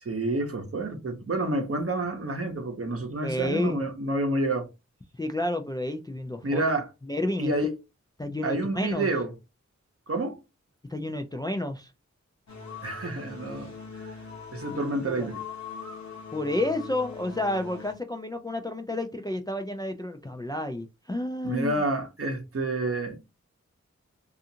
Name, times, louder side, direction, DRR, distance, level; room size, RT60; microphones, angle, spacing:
voice 1, 0.0-4.7 6.4-6.9 7.4-7.7 8.4-9.3 10.1-10.4 12.8-14.1 14.5-15.4 21.4-23.2, right 2 dB, 50° right, 0.8 m, -29 dB
voice 2, 3.2-3.8 5.2-6.6 7.1-7.5 8.2-9.1 10.9-11.9 14.7-15.3 16.3-21.8, left 1 dB, 15° left, 0.3 m, -30 dB
sound 1, 12.5-17.9, left 5 dB, 65° left, 0.9 m, -41 dB
2.6 x 2.4 x 2.7 m
wide cardioid pair, 65°, 30 cm